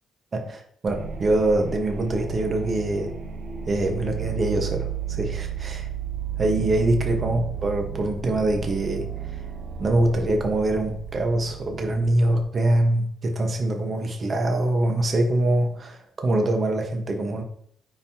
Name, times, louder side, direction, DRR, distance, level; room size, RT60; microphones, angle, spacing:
voice 1, 0.4-3.1 3.7-5.9 6.4-9.4 9.8-17.4, right 1 dB, 40° right, 3 dB, 1.3 m, -24 dB
sound 1, 0.9-12.4, right 8 dB, 55° right, 1.0 m, -33 dB
9.3 x 4.7 x 2.9 m, 0.65 s
cardioid pair, 90°, 0 cm